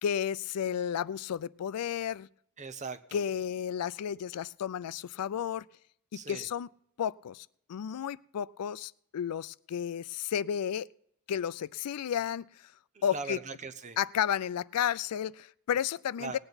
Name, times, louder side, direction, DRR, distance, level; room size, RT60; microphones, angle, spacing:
voice 1, 0.0-2.3 3.1-5.7 6.3-6.7 7.0-10.9 11.3-12.4 13.0-13.4 14.0-16.4, left 9 dB, 90° left, 20 dB, 0.4 m, -32 dB
voice 2, 2.6-3.2 6.1-6.5 12.9-14.0 16.2-16.4, right 4 dB, 35° right, 9 dB, 0.8 m, -40 dB
18.5 x 8.9 x 4.0 m, 0.71 s
head